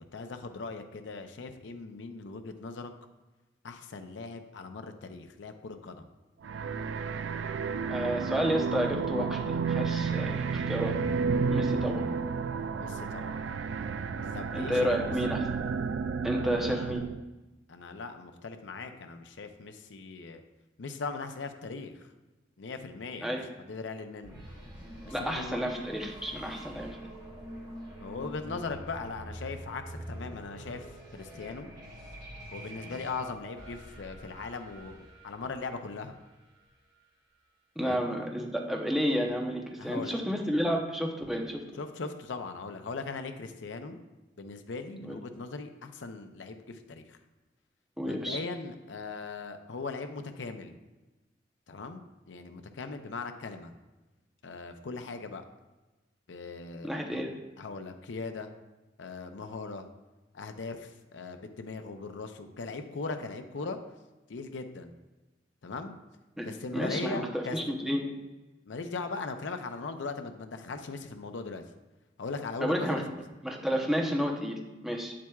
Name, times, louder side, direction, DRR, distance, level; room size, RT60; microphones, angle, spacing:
voice 1, 0.0-2.9 3.6-6.1 12.8-13.5 14.3-15.1 16.3-16.9 17.7-20.4 20.8-22.1 22.6-23.3 23.7-24.3 25.0-25.6 28.0-30.9 31.1-31.7 32.5-35.0 35.2-36.2 37.8-38.1 39.8-40.1 41.8-44.0 44.4-47.2 48.0-50.8 51.7-52.0 52.3-53.7 54.4-55.4 56.3-57.2 57.6-58.5 59.0-59.8 60.3-63.8 64.3-64.9 65.6-65.9 66.4-67.6 68.7-71.6 72.2-73.0, left 4 dB, 75° left, 7 dB, 0.6 m, -39 dB
sound 1, 6.4-17.2, right 5 dB, 80° right, 0.4 m, -31 dB
voice 2, 7.9-11.0 11.5-12.0 14.5-15.5 16.2-17.0 23.2-23.4 25.1-26.9 37.8-41.6 45.1-45.2 48.0-48.4 56.8-57.3 66.4-66.5 66.7-68.2 72.6-73.0 73.4-75.1, equal, ahead, 1 dB, 0.8 m, -31 dB
sound 2, 24.2-36.9, equal, 25° right, 1.3 m, -45 dB
8.2 x 7.5 x 2.3 m, 1.1 s
head